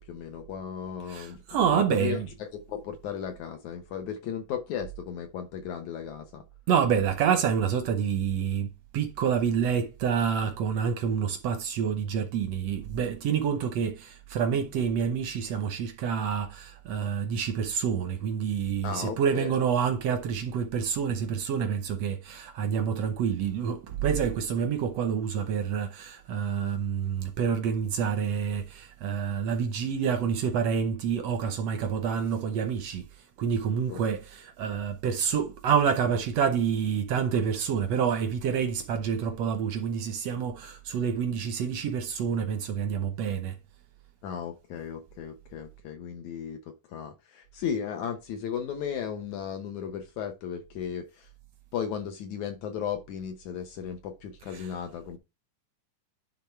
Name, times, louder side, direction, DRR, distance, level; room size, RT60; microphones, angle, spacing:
voice 1, 0.1-6.4 18.8-19.6 33.9-34.0 44.2-51.3 51.7-55.2, left 8 dB, 70° left, 2.0 m, -35 dB
voice 2, 1.1-2.3 6.7-33.0 33.4-43.5 54.5-54.6, right 7 dB, 75° right, 1.5 m, -28 dB
10.5 x 3.7 x 4.5 m
omnidirectional pair, 3.9 m